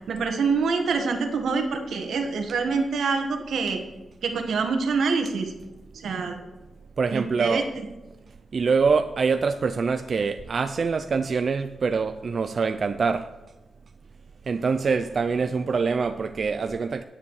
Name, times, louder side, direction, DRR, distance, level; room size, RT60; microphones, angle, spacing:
voice 1, 0.1-3.8 4.2-5.5 5.9-6.4 7.1-7.8, right 4 dB, 85° right, 5 dB, 1.6 m, -26 dB
voice 2, 7.0-7.7 8.5-13.3 14.4-17.0, right 5 dB, 50° right, 9 dB, 0.4 m, -24 dB
10.0 x 9.6 x 4.8 m, 1.1 s
wide cardioid pair, 105°, 0 cm